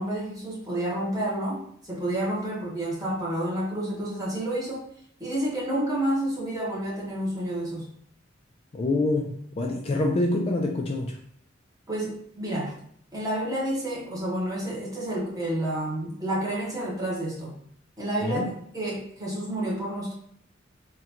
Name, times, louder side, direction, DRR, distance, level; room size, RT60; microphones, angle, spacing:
voice 1, 0.0-4.8 5.2-7.9 11.9-12.7 13.1-17.5 18.0-18.4 18.7-20.1, right 1 dB, 20° right, -5 dB, 0.9 m, -29 dB
voice 2, 8.7-11.2 18.2-18.5, left 2 dB, 30° left, 1 dB, 0.3 m, -26 dB
3.7 x 2.2 x 2.8 m, 0.66 s
head